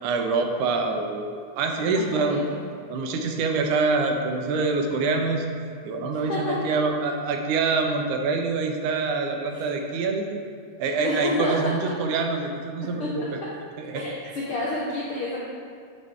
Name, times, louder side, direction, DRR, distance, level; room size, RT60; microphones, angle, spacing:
voice 1, 0.0-2.4 2.9-5.5 5.8-10.4 10.8-13.2 13.8-14.0, right 4 dB, 80° right, 3 dB, 2.1 m, -25 dB
voice 2, 1.9-2.6 6.1-6.6 9.5-9.7 11.0-11.8 13.0-13.1 13.9-15.4, left 1 dB, 75° left, -5 dB, 1.3 m, -29 dB
10.5 x 5.0 x 3.5 m, 2.2 s
omnidirectional pair, 3.6 m